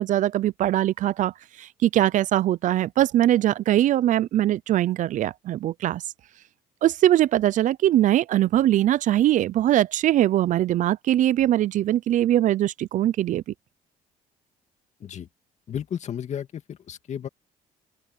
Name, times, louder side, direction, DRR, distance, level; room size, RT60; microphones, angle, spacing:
voice 1, 0.0-6.0 6.8-13.4, right 13 dB, 60° right, 0.5 m, -21 dB
voice 2, 15.7-17.3, left 9 dB, 55° left, 2.2 m, -33 dB
open air
cardioid pair, 95°, 15 cm